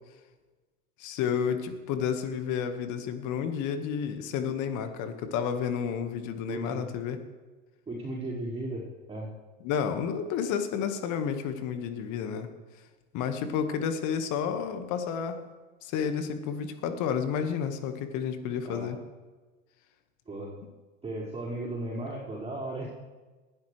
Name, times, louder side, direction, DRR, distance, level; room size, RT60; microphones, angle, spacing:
voice 1, 1.0-7.2 9.6-12.5 13.1-15.4 15.8-19.0, left 7 dB, 45° left, 8 dB, 1.7 m, -31 dB
voice 2, 6.5-6.8 7.9-9.3 18.6-18.9 20.3-20.5 21.0-22.9, right 1 dB, 15° right, -8 dB, 4.9 m, -36 dB
19.5 x 12.5 x 3.3 m, 1.3 s
hypercardioid pair, 95°, 42 cm